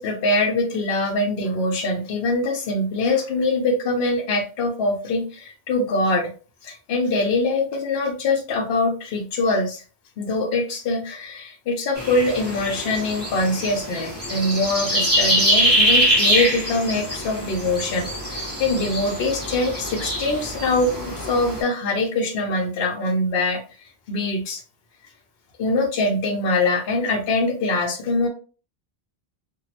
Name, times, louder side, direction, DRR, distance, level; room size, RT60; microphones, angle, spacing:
voice 1, 0.0-6.3 6.6-9.8 10.2-23.6 24.1-24.6 25.6-28.3, left 2 dB, 70° left, 1 dB, 0.9 m, -23 dB
sound 1, 12.0-21.6, equal, 10° right, 1.5 m, -23 dB
2.9 x 2.5 x 2.8 m, 0.36 s
omnidirectional pair, 1.1 m